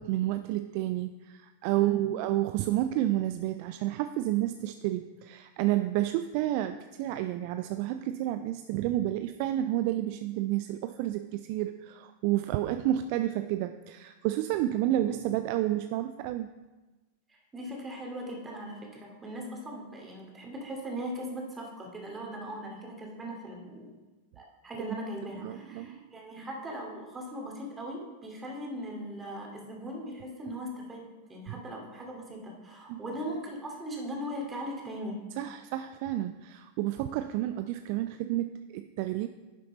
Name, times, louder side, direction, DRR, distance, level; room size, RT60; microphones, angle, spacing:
voice 1, 0.0-16.5 24.9-25.0 25.4-26.0 32.9-33.0 35.4-39.3, right 14 dB, 45° right, 10 dB, 0.3 m, -30 dB
voice 2, 17.3-23.9 24.3-35.2, equal, 15° right, 0 dB, 2.4 m, -39 dB
10.5 x 6.5 x 4.0 m, 1.2 s
figure-of-eight pair, 90°, 0 cm